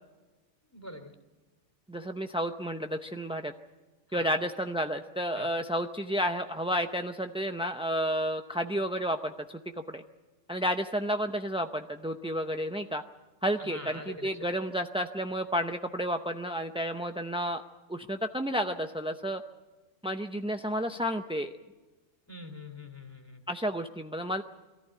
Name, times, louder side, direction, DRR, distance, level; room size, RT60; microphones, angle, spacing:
voice 1, 0.7-1.1 4.1-4.3 5.3-5.5 13.6-14.3 22.3-23.4, left 1 dB, 10° left, 5 dB, 2.6 m, -44 dB
voice 2, 1.9-3.5 4.1-9.3 9.9-10.0 10.5-13.0 13.4-17.6 17.9-19.4 20.0-21.5 23.5-24.4, equal, 5° right, 6 dB, 0.4 m, -31 dB
23.0 x 14.0 x 9.9 m, 1.2 s
omnidirectional pair, 1.2 m